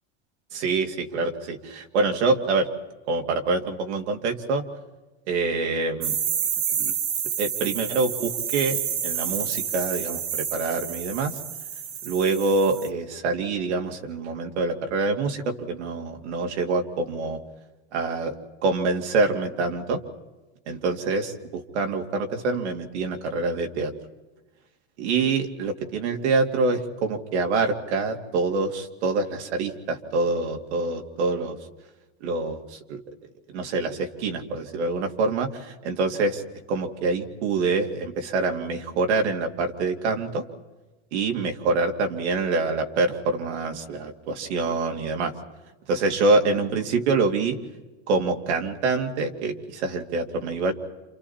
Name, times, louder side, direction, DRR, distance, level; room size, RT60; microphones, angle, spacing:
voice 1, 0.5-2.7 3.1-4.6 5.3-6.2 6.8-6.9 7.4-11.4 12.0-17.4 17.9-18.3 18.6-20.0 20.7-23.9 25.0-31.6 32.2-33.0 33.5-36.4 36.7-40.4 41.1-45.3 45.9-47.6 48.1-50.7, right 3 dB, 85° right, 3 dB, 2.6 m, -26 dB
sound 1, 6.0-12.9, right 8 dB, 60° right, 2.1 m, -29 dB
28.5 x 27.5 x 4.3 m, 1.1 s
supercardioid pair, 145°, 33 cm